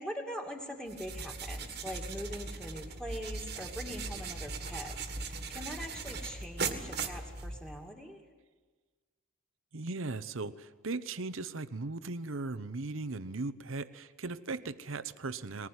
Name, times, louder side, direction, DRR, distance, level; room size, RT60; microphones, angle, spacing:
voice 1, 0.0-8.2, equal, 5° left, 3 dB, 2.5 m, -42 dB
sound 1, 0.9-7.9, right 4 dB, 50° right, 1.8 m, -39 dB
voice 2, 9.7-15.7, right 3 dB, 75° right, 14 dB, 0.9 m, -38 dB
20.5 x 19.5 x 9.6 m, 1.4 s
head